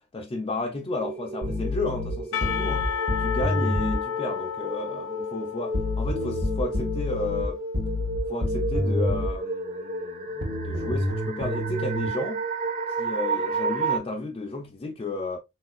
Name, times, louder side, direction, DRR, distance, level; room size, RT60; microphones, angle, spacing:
voice 1, 0.1-2.9 3.2-7.6 8.3-12.4 13.0-15.4, left 2 dB, 25° left, 0.3 m, -32 dB
sound 1, 0.9-14.0, right 2 dB, 35° right, 0.5 m, -32 dB
sound 2, 1.4-4.0 5.7-9.4 10.4-12.1, left 1 dB, 55° right, 0.8 m, -28 dB
Percussion / Church bell, 2.3-7.6, left 7 dB, 75° left, 0.5 m, -33 dB
3.6 x 2.4 x 2.4 m
head